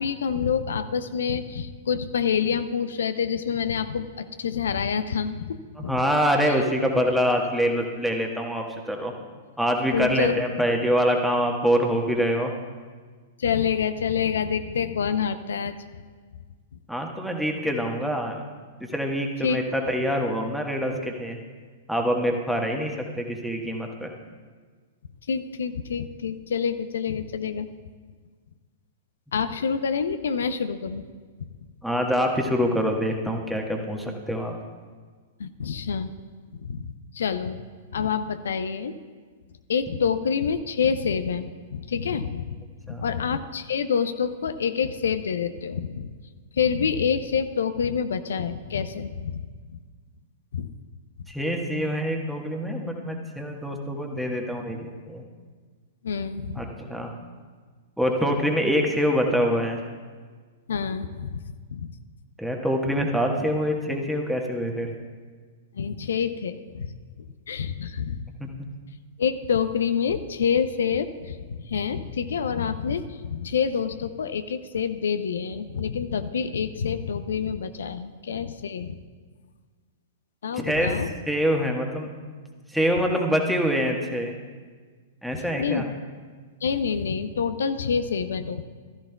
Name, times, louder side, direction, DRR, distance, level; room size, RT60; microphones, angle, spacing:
voice 1, 0.0-5.9 6.4-6.6 9.9-10.3 13.4-15.7 19.4-19.6 19.9-20.0 25.3-27.7 29.3-31.0 35.4-36.1 36.5-37.6 37.9-38.9 39.7-42.6 42.9-46.1 46.6-49.4 50.5-50.7 56.0-56.6 60.7-61.4 61.7-61.9 65.7-66.9 67.5-68.3 69.2-79.0 80.4-81.1 85.3-85.9 86.6-88.6, left 7 dB, 65° left, 11 dB, 0.6 m, -27 dB
voice 2, 5.8-9.1 9.6-12.5 16.9-18.4 18.9-21.4 21.9-24.1 31.8-34.5 42.9-43.1 51.3-55.2 56.6-57.1 58.0-59.8 62.4-64.9 68.4-68.5 80.6-80.9 81.3-82.1 82.7-84.4 85.2-85.8, equal, ahead, 1 dB, 1.4 m, -25 dB
15.5 x 13.5 x 2.3 m, 1.5 s
figure-of-eight pair, 105°, 0 cm